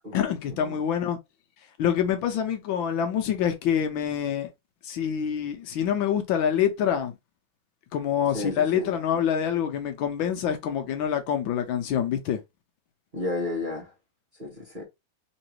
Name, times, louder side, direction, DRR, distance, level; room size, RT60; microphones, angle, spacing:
voice 1, 0.1-1.2 1.8-4.5 4.8-7.1 7.9-12.4, left 9 dB, 75° left, 1.4 m, -26 dB
voice 2, 8.3-8.9 13.1-13.9 14.4-14.8, left 2 dB, 30° right, 1.1 m, -32 dB
3.7 x 3.1 x 2.9 m
omnidirectional pair, 2.3 m